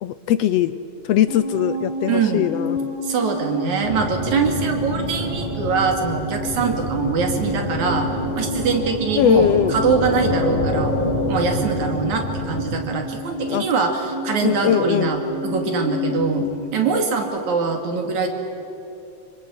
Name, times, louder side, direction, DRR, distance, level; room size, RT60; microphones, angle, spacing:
voice 1, 0.0-0.8 1.0-2.8 9.1-9.7 13.5-13.7 14.4-15.1, left 10 dB, 75° left, 13 dB, 1.6 m, -20 dB
sound 1, 1.3-16.6, equal, 25° right, 6.9 m, -30 dB
voice 2, 2.1-2.5 3.0-8.1 8.4-11.0 11.3-18.3, right 5 dB, 75° right, 4 dB, 3.9 m, -23 dB
sound 2, 3.8-12.7, left 1 dB, 15° left, 3.1 m, -27 dB
26.0 x 24.0 x 8.8 m, 3.0 s
omnidirectional pair, 3.3 m